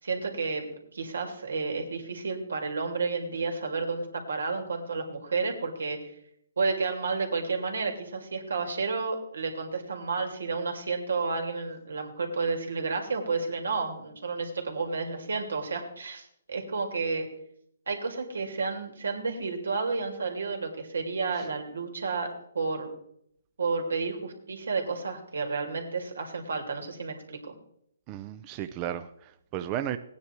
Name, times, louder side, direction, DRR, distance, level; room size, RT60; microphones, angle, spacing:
voice 1, 0.0-6.0 6.6-17.3 17.9-22.9 23.6-27.5, right 4 dB, 85° right, 4 dB, 2.9 m, -31 dB
voice 2, 28.1-30.0, right 11 dB, 25° right, 10 dB, 0.5 m, -34 dB
17.0 x 9.6 x 4.6 m, 0.73 s
hypercardioid pair, 155°, 0 cm